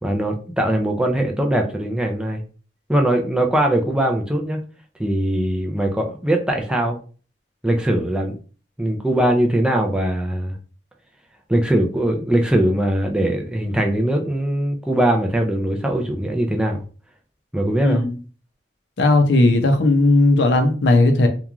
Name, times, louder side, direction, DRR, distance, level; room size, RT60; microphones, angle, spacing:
voice 1, 0.0-2.4 2.9-4.6 5.0-7.0 7.6-8.4 8.8-10.6 11.5-16.8 17.5-18.0, right 1 dB, 5° right, 0.3 m, -21 dB
voice 2, 17.8-18.1 19.0-21.3, left 2 dB, 70° left, 0.5 m, -16 dB
3.0 x 2.3 x 2.3 m
head